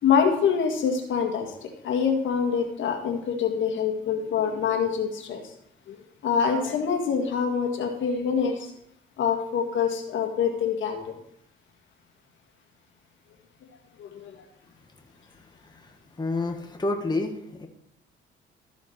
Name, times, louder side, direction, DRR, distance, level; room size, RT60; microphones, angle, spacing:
voice 1, 0.0-5.5 5.9-6.0 6.2-8.7 9.2-11.1 14.0-14.4, left 6 dB, 75° left, 3 dB, 1.9 m, -25 dB
voice 2, 15.7-17.7, left 2 dB, 20° left, 4 dB, 1.7 m, -29 dB
13.5 x 7.2 x 4.5 m, 0.77 s
cardioid pair, 90°, 20 cm